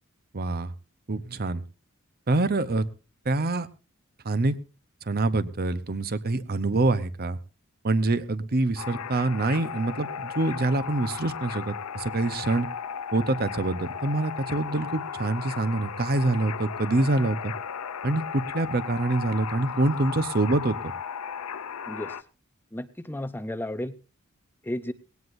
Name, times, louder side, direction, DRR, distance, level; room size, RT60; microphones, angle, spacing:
voice 1, 0.3-0.7 1.1-1.6 2.3-2.8 3.2-3.7 4.2-4.6 5.1-7.4 7.8-12.7 13.1-17.5 18.0-20.8, right 2 dB, 45° right, 13 dB, 0.9 m, -25 dB
sound 1, 8.8-22.2, left 7 dB, 85° left, 0.6 m, -36 dB
voice 2, 22.7-23.9 24.7-24.9, left 1 dB, 10° left, 11 dB, 0.7 m, -33 dB
19.0 x 17.5 x 2.6 m, 0.32 s
head